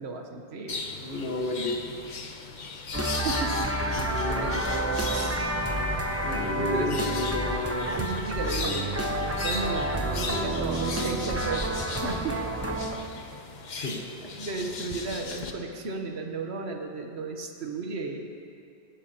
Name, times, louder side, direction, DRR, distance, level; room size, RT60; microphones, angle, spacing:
voice 1, 0.0-0.9 3.2-3.7 5.1-5.6 6.6-6.9 8.0-9.1 9.4-12.4 13.8-13.9 14.2-18.3, right 3 dB, 75° right, 4 dB, 1.3 m, -34 dB
sound 1, 0.7-15.5, left 4 dB, 50° left, 0.8 m, -38 dB
voice 2, 1.0-1.9 4.0-4.6 6.2-8.0 13.8-14.0 14.2-14.3, left 1 dB, 65° left, -1 dB, 1.6 m, -32 dB
sound 2, 2.9-12.9, right 1 dB, 15° right, 0.7 m, -29 dB
18.5 x 12.5 x 2.9 m, 2.5 s
omnidirectional pair, 1.1 m